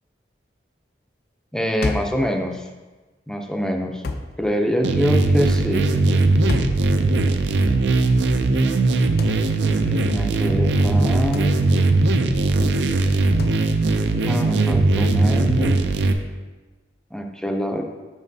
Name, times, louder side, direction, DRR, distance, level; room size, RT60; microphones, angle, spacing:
voice 1, 1.5-2.7 3.3-4.0 4.4-5.9 9.9-11.5 14.2-15.8 17.1-17.8, equal, 5° left, 3 dB, 0.4 m, -25 dB
sound 1, 1.8-2.2 4.0-4.4 6.5-6.9 9.2-9.4 11.3-11.6 13.4-13.7, left 3 dB, 60° left, 0.4 m, -28 dB
sound 2, 4.8-16.1, right 2 dB, 80° right, 0.5 m, -19 dB
7.3 x 5.9 x 2.7 m, 1.2 s
head